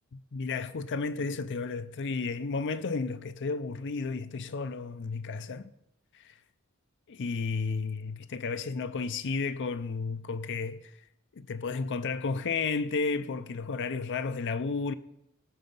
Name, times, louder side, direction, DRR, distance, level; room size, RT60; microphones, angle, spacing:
voice 1, 0.1-5.7 6.1-6.4 7.1-11.1 11.3-14.9, left 4 dB, 55° left, 0.5 m, -32 dB
18.5 x 6.8 x 5.4 m
head